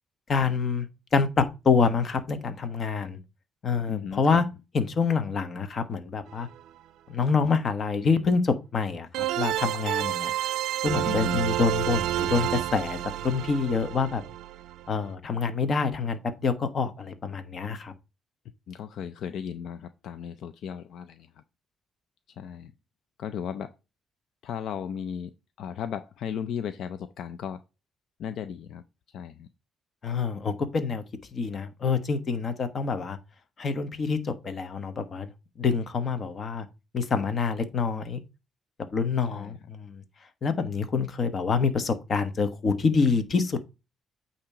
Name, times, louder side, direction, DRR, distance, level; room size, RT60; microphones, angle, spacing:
voice 1, 0.3-0.9 1.1-3.2 3.6-4.4 4.7-6.5 7.1-10.3 10.8-14.2 14.9-17.9 30.0-31.0 31.3-33.2 33.6-35.3 35.6-36.7 36.9-38.2 38.9-40.0 40.4-43.6, left 5 dB, 45° left, 1.1 m, -26 dB
voice 2, 3.9-4.4 11.0-11.4 18.7-21.3 22.4-22.7 23.2-23.7 24.4-25.3 25.6-27.6 28.2-28.8 29.1-29.5 39.3-39.5, left 8 dB, 75° left, 0.4 m, -35 dB
sound 1, 6.3-6.4 9.1-15.0, right 13 dB, 85° right, 0.4 m, -29 dB
8.6 x 2.9 x 4.8 m
cardioid pair, 90°, 0 cm